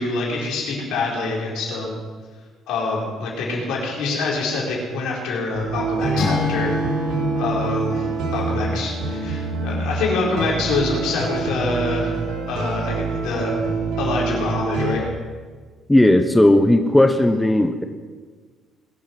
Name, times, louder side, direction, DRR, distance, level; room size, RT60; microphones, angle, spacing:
voice 1, 0.0-1.9 2.7-6.7 7.3-8.1 8.3-12.1 12.5-13.6 14.0-15.0, left 3 dB, 75° left, -3 dB, 4.6 m, -25 dB
sound 1, 5.5-15.0, right 3 dB, 80° right, 3.1 m, -26 dB
Acoustic guitar / Strum, 6.2-9.6, left 2 dB, 45° left, 4.6 m, -28 dB
voice 2, 15.9-17.8, left 1 dB, 10° left, 7 dB, 1.0 m, -15 dB
21.5 x 7.2 x 6.0 m, 1.5 s
supercardioid pair, 80°, 0 cm